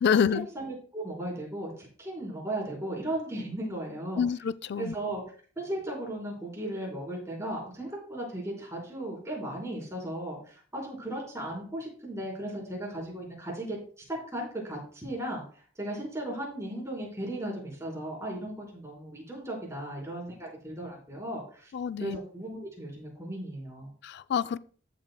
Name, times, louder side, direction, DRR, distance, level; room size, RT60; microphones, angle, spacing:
voice 1, 0.0-0.5 4.2-4.9 21.7-22.2 24.0-24.6, left 7 dB, 55° left, 0.3 m, -27 dB
voice 2, 0.5-4.2 4.8-5.2 5.6-15.4 15.8-21.7 22.0-23.9, right 1 dB, 15° right, 4.0 m, -36 dB
14.0 x 8.0 x 2.2 m
head